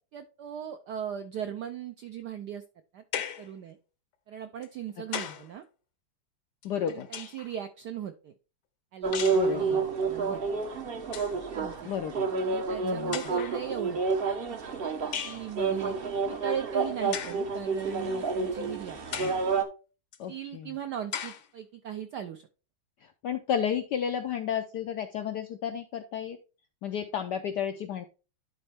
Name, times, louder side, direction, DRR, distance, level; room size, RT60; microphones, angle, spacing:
voice 1, 0.1-2.6 2.9-3.8 4.3-5.6 6.8-8.3 8.9-10.4 11.3-11.9 12.3-14.6 15.2-16.0 16.3-19.3 20.3-22.5, right 9 dB, 75° right, 8 dB, 0.9 m, -39 dB
sound 1, 3.1-3.5 4.6-5.5 6.6-7.5 9.1-9.5 10.6-10.7 11.0-11.4 12.4-12.5 13.1-13.6 15.1-15.5 17.1-17.5 18.1-18.2 19.1-19.5 20.1-20.2 21.1-21.5, left 9 dB, 65° left, 1.1 m, -37 dB
voice 2, 6.6-7.1 9.3-9.8 11.8-12.3 12.8-13.2 20.2-20.7 23.0-26.4 26.8-28.0, left 8 dB, 80° left, 8 dB, 0.9 m, -32 dB
sound 2, 9.0-19.6, right 4 dB, 55° right, 0.6 m, -29 dB
11.0 x 4.3 x 3.4 m, 0.34 s
omnidirectional pair, 2.4 m